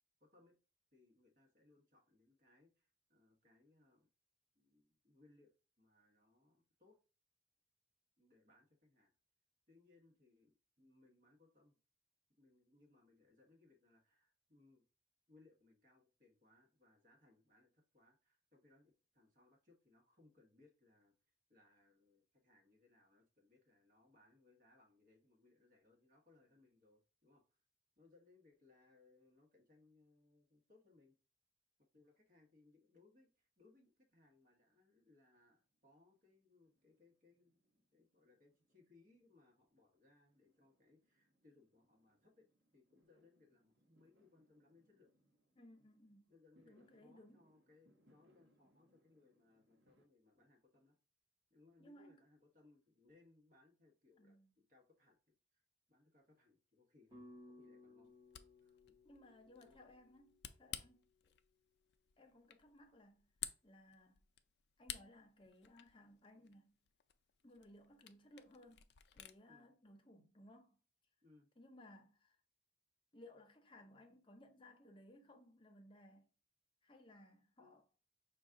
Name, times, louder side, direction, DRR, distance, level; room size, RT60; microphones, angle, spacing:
voice 1, 0.2-0.5 0.9-4.1 4.5-7.0 8.2-9.1 9.7-11.8 12.4-14.8 15.3-27.6 28.0-31.1 31.9-45.1 46.3-51.0 51.5-55.6 55.9-57.2 57.6-58.1 58.6-59.0 59.6-59.8 69.5-69.7 71.2-71.5 77.6-77.8, left 3 dB, 45° right, 1.2 m, -70 dB
Fireworks, 33.6-34.5 34.8-50.1, equal, 75° right, 1.0 m, -77 dB
voice 2, 45.6-46.3 46.6-47.4 51.8-52.3 54.2-54.5 59.0-61.3 62.2-63.2 63.6-64.2 64.8-66.7 67.4-68.9 69.1-70.8 71.6-72.4 73.1-76.3 76.8-77.8, left 1 dB, 30° left, 0.7 m, -62 dB
sound 1, 57.1-61.4, left 1 dB, 20° right, 1.3 m, -62 dB
Camera, 58.0-69.4, left 11 dB, 60° left, 0.4 m, -54 dB
5.2 x 2.3 x 3.6 m
head